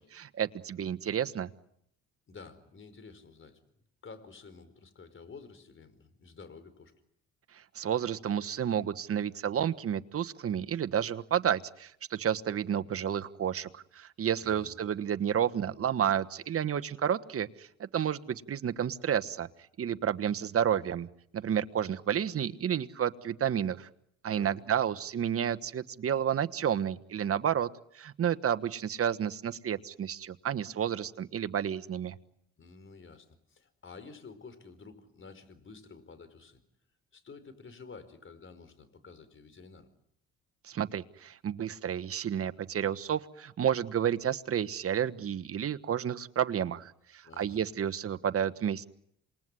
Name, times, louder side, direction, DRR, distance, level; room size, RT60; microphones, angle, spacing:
voice 1, 0.1-1.5 7.7-19.5 19.8-21.1 21.3-23.9 24.2-27.7 27.9-32.1 40.7-48.8, right 9 dB, 45° right, 12 dB, 1.4 m, -31 dB
voice 2, 2.3-3.6 4.0-6.9 14.4-14.8 24.3-24.6 32.6-36.6 37.1-39.9 47.2-47.6, left 4 dB, 40° left, 12 dB, 4.8 m, -50 dB
28.0 x 21.0 x 9.9 m, 0.74 s
supercardioid pair, 75°, 31 cm